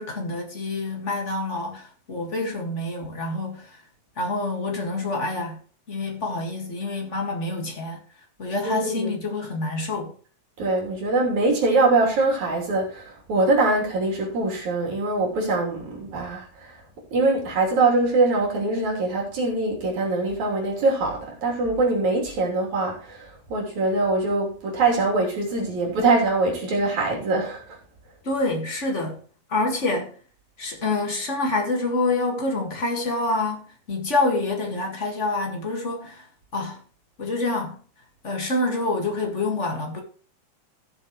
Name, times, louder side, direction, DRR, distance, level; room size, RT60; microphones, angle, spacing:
voice 1, 0.0-3.8 4.2-5.6 5.9-8.0 8.4-10.1 28.2-29.2 29.5-30.1 30.6-36.3 36.5-36.8 37.2-37.8 38.2-40.0, left 2 dB, 40° left, 1.0 m, -27 dB
voice 2, 8.6-9.1 10.6-16.7 17.1-27.6, right 3 dB, 50° right, 4.3 m, -23 dB
16.5 x 7.2 x 3.1 m
omnidirectional pair, 4.4 m